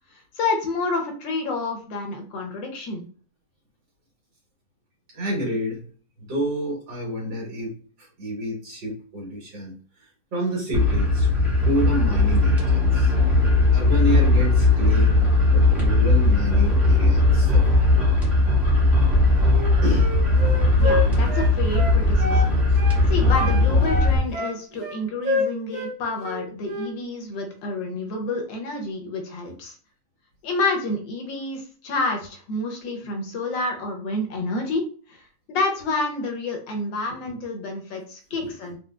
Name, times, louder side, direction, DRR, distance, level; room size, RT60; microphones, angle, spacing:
voice 1, 0.4-3.0 20.8-22.6 23.1-29.7 30.4-35.2 35.5-38.8, left 2 dB, 75° left, 3 dB, 1.4 m, -29 dB
voice 2, 5.1-5.8 6.2-9.7 10.0-11.3 11.6-13.1 13.7-17.9 19.8-20.1 22.7-22.8 38.4-38.5, right 1 dB, 75° right, -4 dB, 1.9 m, -29 dB
sound 1, 10.7-24.2, left 2 dB, ahead, 0.9 m, -18 dB
Wind instrument woodwind instrument, 19.5-22.5 22.7-23.0 23.3-25.9 26.2-26.9, left 1 dB, 30° right, 0.7 m, -28 dB
4.3 x 2.3 x 2.3 m, 0.42 s
omnidirectional pair, 2.1 m